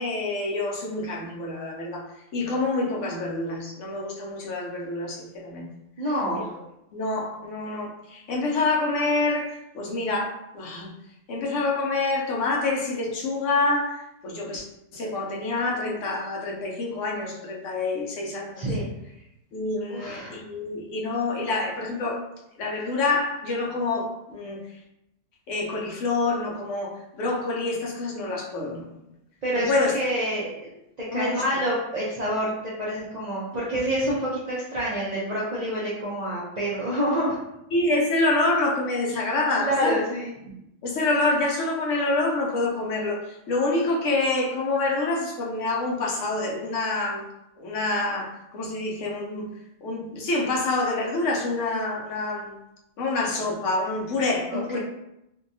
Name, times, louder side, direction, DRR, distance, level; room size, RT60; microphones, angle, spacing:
voice 1, 0.0-2.0 2.3-5.7 6.3-6.4 6.9-10.9 11.3-14.6 14.9-18.6 19.5-22.2 22.6-24.6 25.5-28.9 29.5-30.0 31.1-31.4 37.7-40.0 40.8-47.2 47.6-49.5 49.8-52.5 53.0-54.8, left 2 dB, 75° left, -2 dB, 0.9 m, -27 dB
voice 2, 6.0-6.5 18.6-18.9 19.9-20.4 29.4-30.7 31.1-37.4 39.6-40.3 54.5-54.8, equal, 55° right, -7 dB, 0.4 m, -27 dB
2.6 x 2.2 x 2.6 m, 0.84 s
omnidirectional pair, 1.4 m